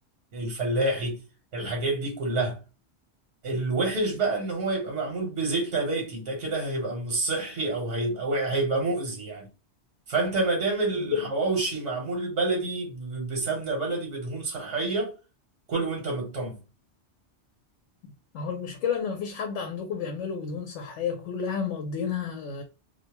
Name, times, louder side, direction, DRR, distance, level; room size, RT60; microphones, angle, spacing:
voice 1, 0.3-1.2 1.5-2.6 3.4-9.5 10.1-15.1 15.7-16.6, right 2 dB, 90° right, 1.3 m, -28 dB
voice 2, 18.3-22.6, left 7 dB, 85° left, 0.9 m, -31 dB
2.6 x 2.1 x 2.8 m
omnidirectional pair, 1.2 m